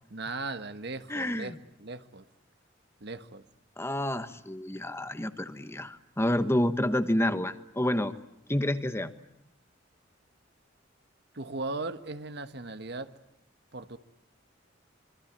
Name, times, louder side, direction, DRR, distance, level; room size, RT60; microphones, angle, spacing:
voice 1, 0.1-1.5 1.8-2.2 3.0-3.4 11.3-13.1 13.7-14.0, right 3 dB, 60° right, 9 dB, 1.4 m, -37 dB
voice 2, 1.1-1.6 3.8-8.1 8.5-9.1, left 1 dB, 15° left, 10 dB, 1.2 m, -29 dB
26.0 x 24.0 x 8.8 m, 0.80 s
head